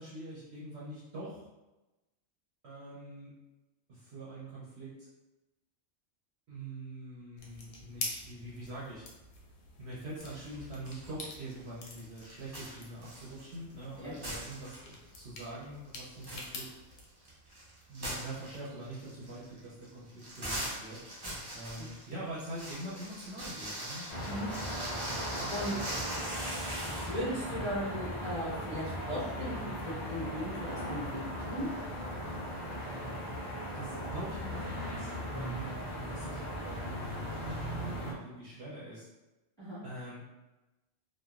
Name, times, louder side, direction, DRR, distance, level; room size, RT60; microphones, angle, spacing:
voice 1, 0.0-1.5 2.6-3.3 3.9-5.1 6.5-9.1 9.8-16.7 17.9-21.0 21.5-24.1 25.4-25.6 33.7-39.1 39.8-40.2, right 1 dB, 65° right, -7 dB, 0.9 m, -44 dB
sound 1, 7.4-17.1, left 2 dB, 85° left, 1.0 m, -46 dB
sound 2, 10.2-11.1 11.4-13.8 14.1-15.1 15.4-15.5 15.9-27.2, right 1 dB, 30° right, 0.5 m, -42 dB
sound 3, 24.1-38.1, equal, 60° left, 1.0 m, -38 dB
voice 2, 26.8-31.7 39.6-39.8, equal, 5° left, -11 dB, 1.3 m, -37 dB
2.9 x 2.2 x 2.4 m, 1.0 s
omnidirectional pair, 1.3 m